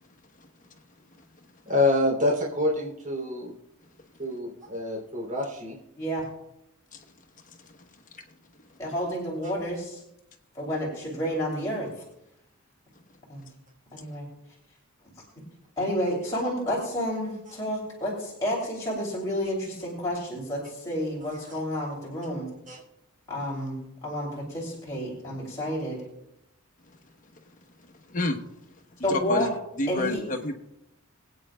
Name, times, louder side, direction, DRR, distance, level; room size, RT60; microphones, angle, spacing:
voice 1, 1.7-3.5 4.2-5.8 21.2-21.5 22.7-22.8, left 2 dB, 35° right, -2 dB, 3.0 m, -27 dB
voice 2, 5.9-6.3 8.8-10.0 10.5-12.0 13.3-13.5 13.9-14.3 15.8-22.5 23.3-26.0 29.0-29.5 29.9-30.2, equal, 15° left, -5 dB, 2.8 m, -30 dB
voice 3, 28.1-28.4 29.1-29.5 29.8-30.5, left 2 dB, 40° left, 4 dB, 1.0 m, -29 dB
23.0 x 8.7 x 2.3 m, 0.82 s
head